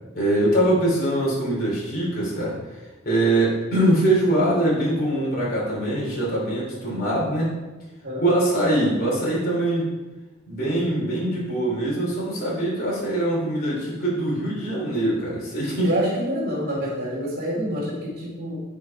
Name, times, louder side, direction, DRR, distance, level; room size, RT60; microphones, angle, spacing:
voice 1, 0.1-2.5 3.0-7.5 8.2-9.8 10.5-15.9, right 1 dB, 45° left, -6 dB, 3.0 m, -23 dB
voice 2, 15.8-18.6, equal, 50° right, -6 dB, 2.6 m, -27 dB
8.9 x 5.4 x 4.6 m, 1.2 s
head